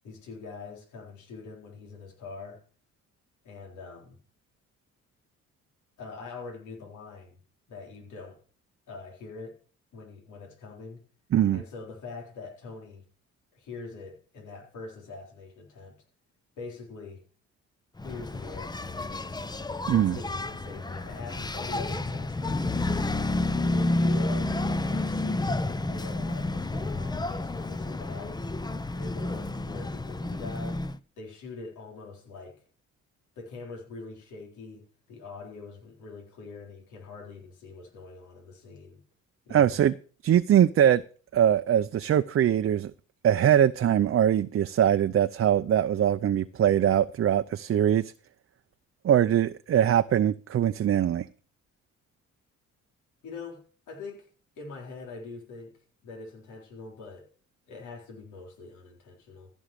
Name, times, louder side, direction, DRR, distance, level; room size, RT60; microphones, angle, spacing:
voice 1, 0.0-2.6 3.4-4.2 6.0-7.4 7.7-8.4 8.9-9.6 9.9-11.0 11.5-13.0 13.5-16.0 16.6-17.2 18.0-19.4 20.0-23.2 23.7-24.5 24.8-28.4 28.9-30.8 31.2-32.6 33.4-39.0 39.5-39.8 53.2-54.3 54.6-55.7 56.0-57.3 57.7-59.5, left 4 dB, 80° left, 4.0 m, -43 dB
voice 2, 11.3-11.6 19.9-20.2 39.5-39.9 40.2-41.0 41.3-42.9 43.2-48.1 49.0-51.3, right 10 dB, 45° right, 0.6 m, -22 dB
Engine, 18.0-31.0, left 2 dB, 15° left, 0.7 m, -30 dB
15.0 x 6.3 x 6.8 m
cardioid pair, 90°, 30 cm